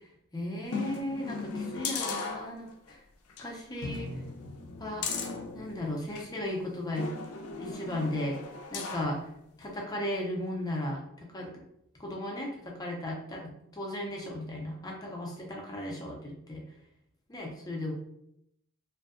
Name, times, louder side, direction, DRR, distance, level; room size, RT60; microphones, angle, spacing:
voice 1, 0.0-3.0 3.4-4.2 4.8-5.1 5.5-7.1 7.6-8.4 8.7-9.3 9.6-11.5 12.0-13.5 13.8-16.7 17.3-17.9, left 1 dB, 15° left, -2 dB, 0.4 m, -36 dB
sound 1, 0.7-2.9 3.3-3.4 3.8-6.3 7.0-9.2 9.6-9.7, left 4 dB, 80° left, 0.4 m, -37 dB
2.6 x 2.1 x 2.4 m, 0.78 s
head